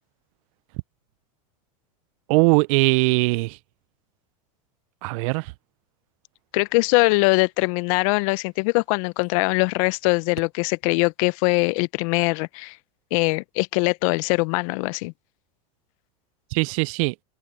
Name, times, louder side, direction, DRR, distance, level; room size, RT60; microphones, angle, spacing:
voice 1, 2.3-3.6 5.0-5.4 16.5-17.1, right 27 dB, 65° right, 0.5 m, -20 dB
voice 2, 6.5-12.8 13.1-15.1, left 27 dB, 65° left, 0.8 m, -22 dB
hypercardioid pair, 100°, 19 cm